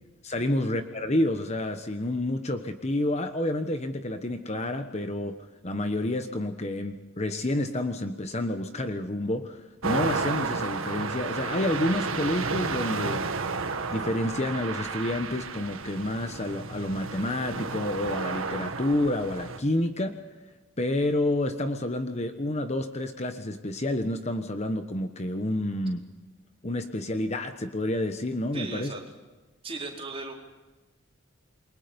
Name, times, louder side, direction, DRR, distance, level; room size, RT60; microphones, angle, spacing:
voice 1, 0.2-5.3 5.6-13.2 13.9-20.2 20.8-26.1 26.6-28.9, left 1 dB, 35° left, 7 dB, 1.2 m, -29 dB
sound 1, 9.8-19.6, right 4 dB, 85° right, 1.7 m, -32 dB
voice 2, 28.5-29.0 29.6-30.3, right 3 dB, 30° right, 0 dB, 4.3 m, -37 dB
28.5 x 23.0 x 5.3 m, 1.1 s
head